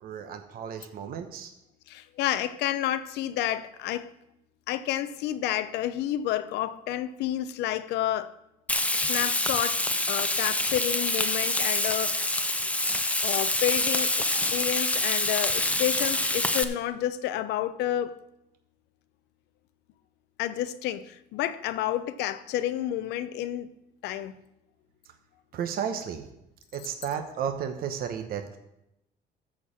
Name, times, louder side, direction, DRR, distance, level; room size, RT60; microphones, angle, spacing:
voice 1, 0.0-1.5 25.5-26.3 26.7-28.6, right 8 dB, 60° right, 1.0 m, -33 dB
voice 2, 1.9-4.1 4.7-8.3 9.1-9.8 10.1-12.3 13.2-14.3 14.5-18.2 20.4-23.7 24.0-24.3, left 12 dB, 85° left, 0.7 m, -30 dB
Frying (food), 8.7-16.6, left 2 dB, 10° left, 0.7 m, -26 dB
13.0 x 4.5 x 7.3 m
cardioid pair, 110°, 17 cm